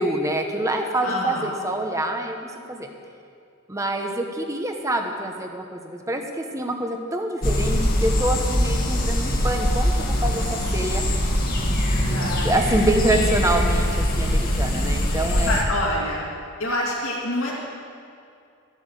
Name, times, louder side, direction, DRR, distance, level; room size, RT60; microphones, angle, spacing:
voice 1, 0.0-2.9 3.7-11.0 11.9-15.6, right 1 dB, 15° right, 3 dB, 1.0 m, -26 dB
voice 2, 1.0-1.5 12.0-12.6 15.4-16.3 16.6-17.6, left 1 dB, 65° left, -4 dB, 2.5 m, -26 dB
sound 1, 7.4-15.6, equal, 45° left, 1.6 m, -22 dB
13.5 x 7.5 x 8.3 m, 2.4 s
head